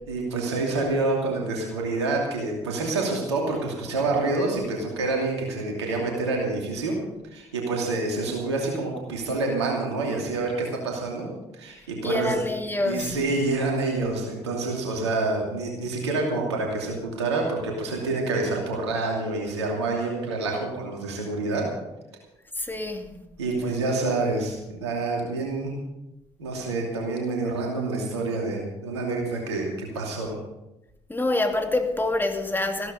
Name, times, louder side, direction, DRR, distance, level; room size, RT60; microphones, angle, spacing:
voice 1, 0.1-7.0 7.2-12.3 12.7-21.7 23.4-25.7 26.4-30.3, right 3 dB, 85° right, 2.7 m, -27 dB
voice 2, 12.0-13.2 22.6-23.1 31.1-32.9, left 2 dB, 15° left, 2.6 m, -26 dB
15.0 x 12.5 x 5.3 m
hypercardioid pair, 40°, 14 cm